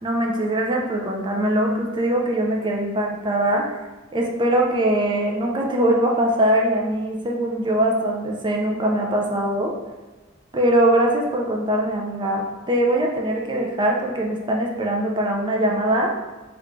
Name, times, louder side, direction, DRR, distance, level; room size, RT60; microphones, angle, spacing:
voice 1, 0.0-3.8 4.1-9.7 10.5-16.1, right 1 dB, 25° right, 0 dB, 0.4 m, -22 dB
3.4 x 3.1 x 2.5 m, 1.2 s
head